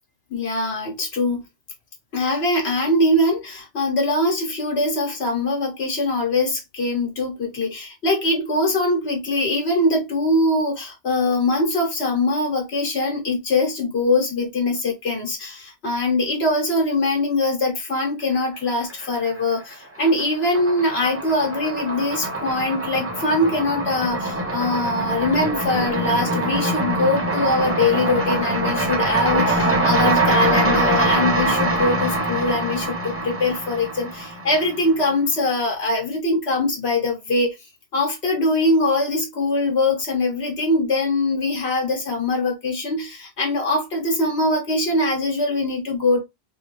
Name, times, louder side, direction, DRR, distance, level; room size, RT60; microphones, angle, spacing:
voice 1, 0.3-1.4 2.1-37.5 37.9-46.2, left 2 dB, 90° left, 1.5 m, -22 dB
sound 1, 18.7-19.4 19.7-34.9, right 2 dB, 15° right, 0.9 m, -23 dB
3.5 x 3.1 x 3.2 m
omnidirectional pair, 1.1 m